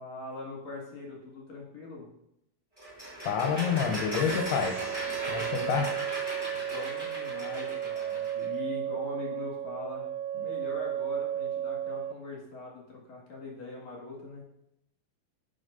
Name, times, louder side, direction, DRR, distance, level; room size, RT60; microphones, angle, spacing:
voice 1, 0.0-2.1 6.5-14.4, left 3 dB, 50° left, -3 dB, 2.9 m, -42 dB
sound 1, 2.8-8.4, right 1 dB, 10° right, 1.4 m, -37 dB
voice 2, 3.3-4.8 5.3-5.9, left 7 dB, 90° left, 3 dB, 2.8 m, -28 dB
sound 2, 4.1-12.1, right 10 dB, 85° right, 2.6 m, -34 dB
11.0 x 6.0 x 2.6 m, 0.79 s
omnidirectional pair, 4.5 m